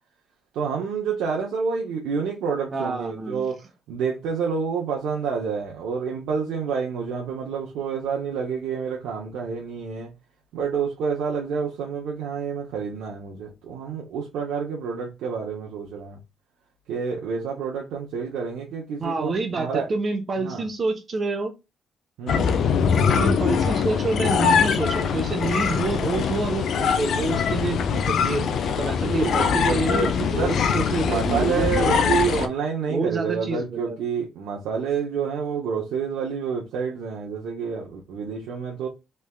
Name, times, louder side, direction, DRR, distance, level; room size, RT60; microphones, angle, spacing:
voice 1, 0.5-10.1 10.5-16.2 16.9-19.9 20.4-20.7 22.2-22.7 29.0-30.1 30.4-30.5 31.0-38.9, right 6 dB, 85° right, 0.7 m, -28 dB
voice 2, 2.7-3.4 19.0-21.5 23.1-32.3 32.9-34.0, right 3 dB, 40° right, 1.0 m, -28 dB
sound 1, 22.3-32.5, left 6 dB, 65° left, 0.5 m, -22 dB
3.3 x 3.3 x 2.3 m
cardioid pair, 90°, 0 cm